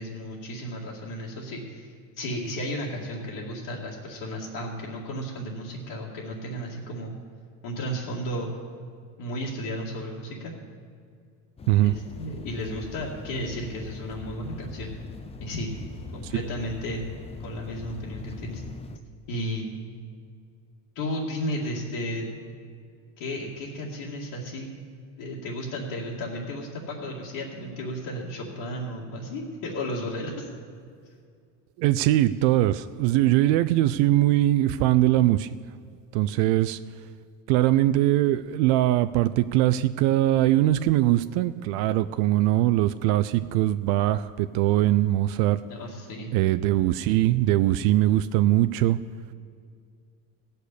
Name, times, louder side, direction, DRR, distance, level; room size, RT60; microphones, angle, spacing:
voice 1, 0.0-7.1 7.6-8.5 9.2-10.5 11.8-14.9 15.4-15.7 16.1-17.0 17.4-18.6 19.3-19.7 21.0-22.3 23.2-24.7 25.2-30.5 45.7-46.3, equal, 70° left, -6 dB, 2.3 m, -33 dB
sound 1, 11.6-19.0, left 4 dB, 15° left, 0.5 m, -41 dB
voice 2, 31.8-35.5 36.1-36.8 37.5-45.6 46.3-49.0, right 14 dB, 75° right, 12 dB, 0.5 m, -21 dB
16.0 x 6.7 x 8.3 m, 2.2 s
supercardioid pair, 120°, 40 cm